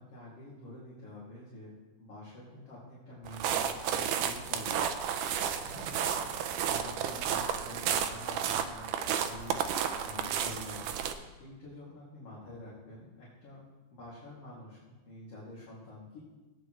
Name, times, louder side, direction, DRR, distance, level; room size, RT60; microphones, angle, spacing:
voice 1, 0.0-1.7 2.0-4.9 5.6-6.3 6.7-10.9 11.4-13.6 13.9-16.2, left 2 dB, 40° left, -8 dB, 3.2 m, -48 dB
sound 1, 3.3-11.1, right 8 dB, 90° right, 1.8 m, -32 dB
17.0 x 9.1 x 3.2 m, 1.2 s
omnidirectional pair, 4.5 m